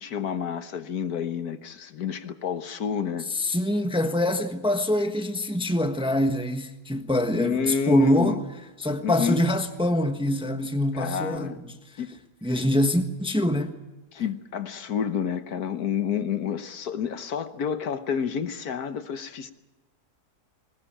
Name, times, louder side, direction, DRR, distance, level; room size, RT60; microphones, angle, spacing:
voice 1, 0.0-3.3 7.3-8.4 9.0-9.4 10.9-11.6 12.0-12.2 14.1-19.5, left 7 dB, 70° left, 1.6 m, -29 dB
voice 2, 3.3-8.4 8.8-11.7 12.4-13.8, left 1 dB, 5° right, 1.1 m, -24 dB
20.5 x 19.5 x 8.8 m
omnidirectional pair, 1.7 m